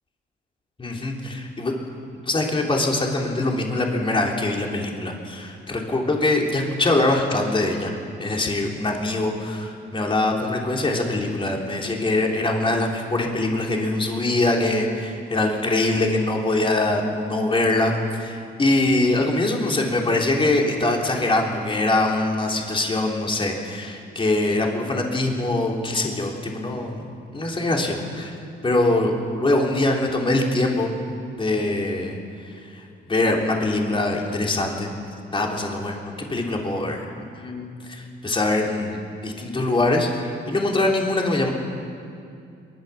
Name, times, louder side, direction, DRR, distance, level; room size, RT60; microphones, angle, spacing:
voice 1, 0.8-1.7 2.3-7.9 8.2-27.0 27.3-28.4 28.6-30.9 31.4-34.9 35.3-41.5, left 2 dB, 25° left, 0 dB, 3.6 m, -23 dB
23.0 x 20.0 x 7.1 m, 2.4 s
cardioid pair, 90°, 20 cm